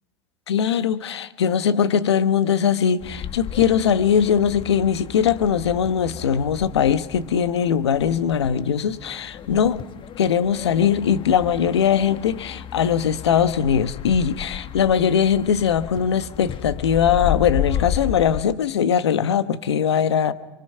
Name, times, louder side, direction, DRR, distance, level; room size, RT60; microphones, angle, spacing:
voice 1, 0.5-9.8 10.2-20.3, left 8 dB, 90° left, 1.2 m, -20 dB
sound 1, 3.0-18.4, left 10 dB, 35° left, 1.2 m, -33 dB
26.5 x 24.0 x 5.6 m
hypercardioid pair, 95°, 14 cm